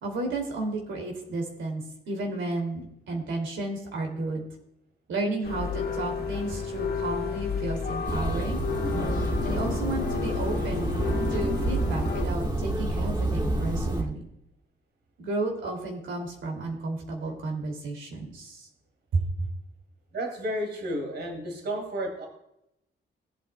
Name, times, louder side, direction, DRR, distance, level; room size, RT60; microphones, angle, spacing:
voice 1, 0.0-4.5 5.1-8.6 9.4-10.8 11.3-14.3 15.2-18.7 19.1-19.5, right 2 dB, 90° right, 2 dB, 2.6 m, -32 dB
sound 1, 5.4-12.3, left 6 dB, 55° left, 1.6 m, -32 dB
sound 2, 8.1-14.0, right 2 dB, 20° right, 1.5 m, -28 dB
voice 2, 20.1-22.3, equal, 60° right, 2 dB, 2.5 m, -32 dB
18.0 x 8.4 x 2.2 m, 0.81 s
wide cardioid pair, 150°, 19 cm